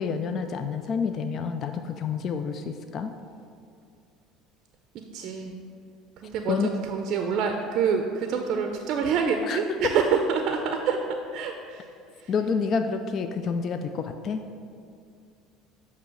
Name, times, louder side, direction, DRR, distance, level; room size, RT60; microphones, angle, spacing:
voice 1, 0.0-3.1 6.5-6.7 9.4-9.6 12.3-14.4, left 5 dB, 45° left, 7 dB, 0.3 m, -28 dB
voice 2, 5.1-5.6 6.2-11.0 11.3-12.3, right 6 dB, 60° right, 4 dB, 0.5 m, -27 dB
7.8 x 2.8 x 6.0 m, 2.4 s
supercardioid pair, 110°, 0 cm